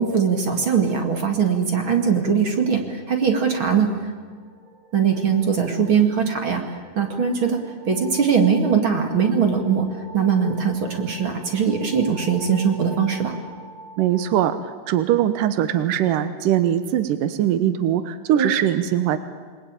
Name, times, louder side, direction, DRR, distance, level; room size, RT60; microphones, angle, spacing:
voice 1, 0.0-4.1 4.9-7.6 7.8-9.9 10.1-13.3 18.3-18.5, right 6 dB, 40° right, 4 dB, 2.5 m, -21 dB
sound 1, 4.1-15.2, right 2 dB, 65° right, 6.1 m, -44 dB
voice 2, 14.0-19.2, right 11 dB, 85° right, 11 dB, 2.6 m, -21 dB
28.0 x 20.0 x 9.0 m, 1.5 s
omnidirectional pair, 3.8 m